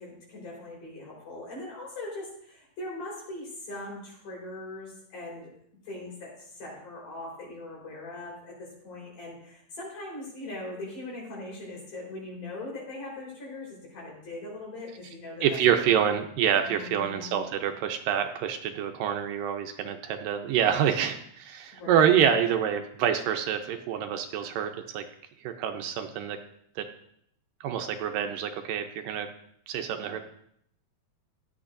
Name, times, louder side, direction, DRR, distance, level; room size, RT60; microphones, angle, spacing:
voice 1, 0.0-5.5 5.9-15.9 16.6-17.4 21.7-22.3, left 2 dB, 60° left, -3 dB, 5.7 m, -40 dB
voice 2, 15.4-25.0 25.4-26.4 26.8-26.9 27.6-29.3 29.7-30.2, right 9 dB, 75° right, 6 dB, 2.3 m, -27 dB
15.5 x 10.5 x 2.6 m, 0.70 s
omnidirectional pair, 4.1 m